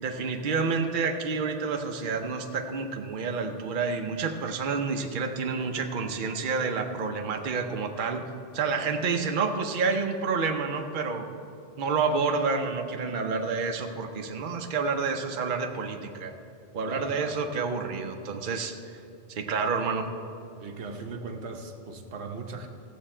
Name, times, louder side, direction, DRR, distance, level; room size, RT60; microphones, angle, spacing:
voice 1, 0.0-8.2 8.5-11.3 11.8-16.3 16.7-18.8 19.3-20.1, right 4 dB, 55° right, 4 dB, 0.8 m, -29 dB
voice 2, 16.9-17.2 20.6-22.7, right 4 dB, 85° right, 4 dB, 1.2 m, -38 dB
15.0 x 7.5 x 4.4 m, 2.6 s
omnidirectional pair, 1.1 m